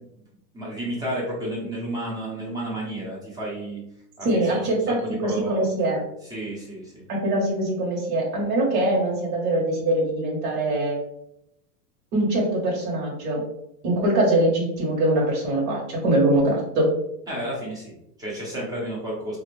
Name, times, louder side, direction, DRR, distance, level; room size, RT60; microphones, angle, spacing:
voice 1, 0.5-3.8 4.2-4.7 5.0-5.7 6.2-7.0 17.3-19.4, right 1 dB, 10° right, -5 dB, 0.8 m, -32 dB
voice 2, 4.2-6.0 7.1-11.0 12.1-13.4 13.8-16.9, right 1 dB, 60° right, -4 dB, 1.3 m, -23 dB
3.6 x 2.5 x 3.1 m, 0.79 s
supercardioid pair, 155°, 49 cm